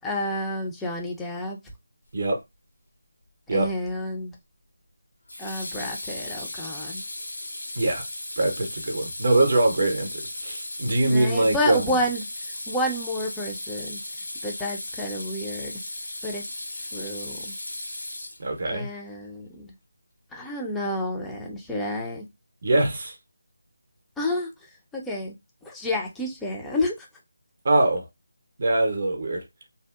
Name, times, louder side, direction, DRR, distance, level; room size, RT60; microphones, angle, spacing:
voice 1, 0.0-1.6 3.5-4.3 5.4-7.0 11.1-12.2 12.7-14.0 14.4-15.8 16.2-16.4 16.7-17.5 18.7-19.7 20.3-22.2 24.2-24.5 24.9-25.3 25.6-27.1, left 1 dB, 5° left, 0.4 m, -30 dB
Water tap faucet / Sink (filling or washing), 3.6-4.0 5.3-18.7, left 1 dB, 65° left, 1.3 m, -36 dB
voice 2, 8.4-12.0 18.4-18.9 22.6-23.2 27.6-28.0 28.6-29.4, right 2 dB, 50° right, 0.6 m, -23 dB
2.6 x 2.0 x 2.3 m
figure-of-eight pair, 160°, 0 cm